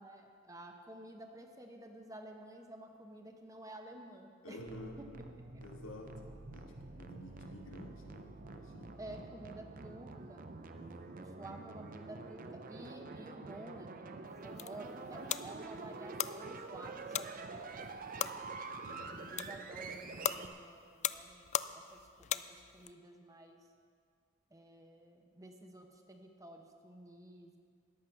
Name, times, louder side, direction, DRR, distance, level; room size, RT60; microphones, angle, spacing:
voice 1, 0.0-4.6 9.0-10.5 11.2-18.5 19.2-23.6 24.5-27.6, right 1 dB, 15° right, 3 dB, 1.0 m, -52 dB
voice 2, 4.4-5.0 5.6-8.9 10.7-11.1 18.8-19.4, left 1 dB, 85° left, 0 dB, 2.0 m, -51 dB
sound 1, 4.6-20.5, right 3 dB, 45° right, 0.7 m, -47 dB
sound 2, 14.3-22.9, left 10 dB, 35° left, 0.3 m, -41 dB
14.0 x 10.5 x 5.9 m, 2.1 s
head